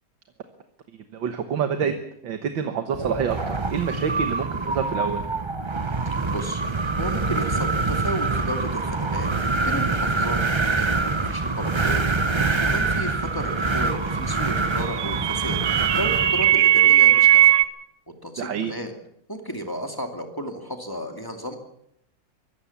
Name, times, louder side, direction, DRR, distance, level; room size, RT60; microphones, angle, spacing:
voice 1, 1.1-2.0 2.2-5.3 11.4-11.5 18.4-18.7, right 7 dB, 90° right, 7 dB, 2.0 m, -27 dB
Wind, 2.9-16.6, right 3 dB, 30° right, 0.5 m, -25 dB
voice 2, 6.0-9.3 9.7-10.4 10.8-12.1 12.4-15.6 15.9-17.5 18.2-18.9 19.3-21.6, equal, 10° left, 4 dB, 2.3 m, -33 dB
sound 1, 14.5-17.6, right 12 dB, 70° right, 1.5 m, -18 dB
24.0 x 15.5 x 7.1 m, 0.76 s
omnidirectional pair, 2.0 m